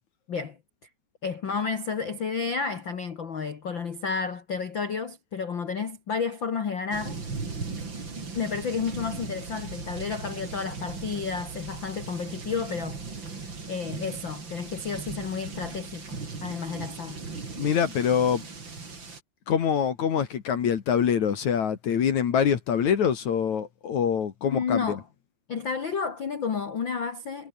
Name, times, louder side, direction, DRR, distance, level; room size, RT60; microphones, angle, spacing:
voice 1, 1.2-7.2 8.3-13.0 13.7-17.2 24.4-25.0 25.5-27.5, left 5 dB, 90° left, 1.0 m, -31 dB
sound 1, 6.9-19.2, right 4 dB, 30° right, 4.1 m, -38 dB
voice 2, 17.6-18.4 19.5-25.0, left 8 dB, 55° left, 2.7 m, -25 dB
omnidirectional pair, 4.8 m